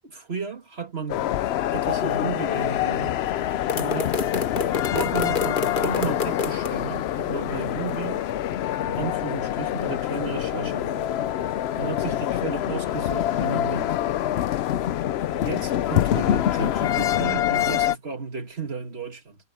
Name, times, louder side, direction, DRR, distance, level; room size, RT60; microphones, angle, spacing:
voice 1, 0.0-1.3 1.7-3.2 3.7-4.2 4.9-8.3 8.8-11.1 11.8-14.0 15.3-19.4, right 5 dB, 80° right, 2.4 m, -33 dB
sound 1, 1.1-18.0, left 11 dB, 80° left, 0.8 m, -25 dB
sound 2, 3.7-6.7, left 4 dB, 55° left, 1.2 m, -29 dB
omnidirectional pair, 1.1 m